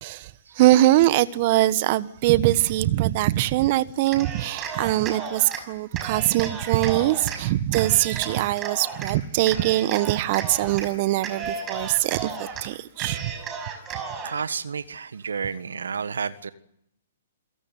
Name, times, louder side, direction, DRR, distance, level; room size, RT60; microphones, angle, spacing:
voice 1, 0.0-13.3, right 15 dB, 45° right, 1.3 m, -22 dB
Cheering, 4.0-5.6 5.9-7.4 7.7-9.1 9.5-10.9 11.2-12.6 13.0-14.4, right 5 dB, 20° right, 6.0 m, -34 dB
voice 2, 14.2-16.5, right 6 dB, 75° right, 1.5 m, -31 dB
28.0 x 17.5 x 9.4 m
hypercardioid pair, 125°, 0 cm